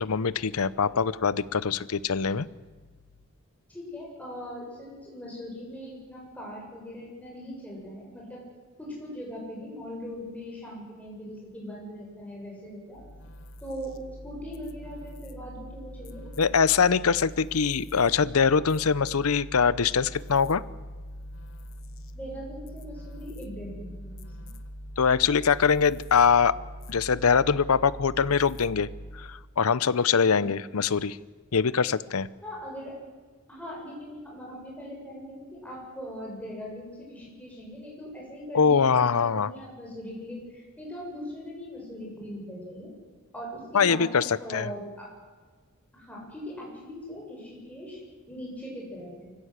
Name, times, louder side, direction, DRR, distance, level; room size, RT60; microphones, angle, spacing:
voice 1, 0.0-2.5 16.4-20.6 25.0-26.5 26.9-28.9 29.1-31.2 31.5-32.3 38.5-39.5 43.7-44.7, left 6 dB, 80° left, 19 dB, 0.7 m, -23 dB
voice 2, 3.7-8.4 8.8-13.0 13.6-14.0 14.2-16.3 22.1-24.3 30.3-30.5 32.4-33.0 33.5-42.9 43.3-45.1 45.9-48.0 48.3-49.3, equal, 5° left, -3 dB, 7.4 m, -40 dB
sound 1, 12.9-29.5, equal, 65° left, 1.3 m, -43 dB
24.0 x 16.0 x 8.1 m, 1.4 s
head